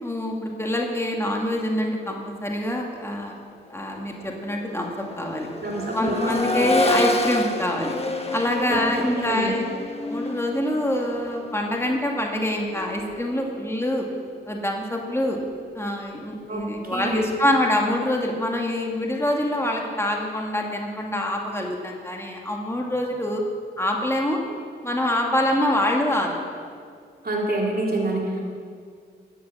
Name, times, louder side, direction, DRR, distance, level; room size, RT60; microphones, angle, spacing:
voice 1, 0.0-3.3 3.7-5.5 5.9-7.9 8.3-9.6 10.0-14.1 14.5-15.4 15.7-23.4 23.8-24.4 24.8-26.4, left 1 dB, 10° left, 0 dB, 2.1 m, -25 dB
Accelerating revving vroom, 3.1-3.2 3.7-13.6 15.3-15.4, left 2 dB, 30° left, 1.4 m, -30 dB
voice 2, 5.6-6.9 8.7-8.8 9.1-9.5 16.5-17.2 27.2-28.4, right 2 dB, 45° right, -2 dB, 3.3 m, -27 dB
13.5 x 8.0 x 7.1 m, 2.1 s
cardioid pair, 45°, 21 cm